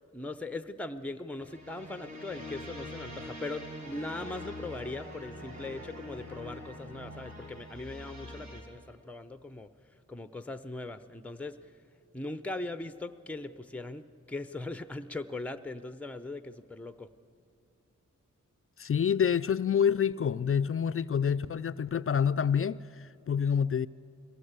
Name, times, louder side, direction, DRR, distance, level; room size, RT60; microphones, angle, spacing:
voice 1, 0.0-11.7 12.1-17.1, left 2 dB, 5° left, 11 dB, 0.7 m, -40 dB
sound 1, 1.3-8.6, left 1 dB, 65° right, 3.5 m, -44 dB
voice 2, 18.8-23.9, left 7 dB, 45° left, 14 dB, 0.4 m, -27 dB
22.0 x 17.0 x 8.1 m, 2.5 s
cardioid pair, 65°, 31 cm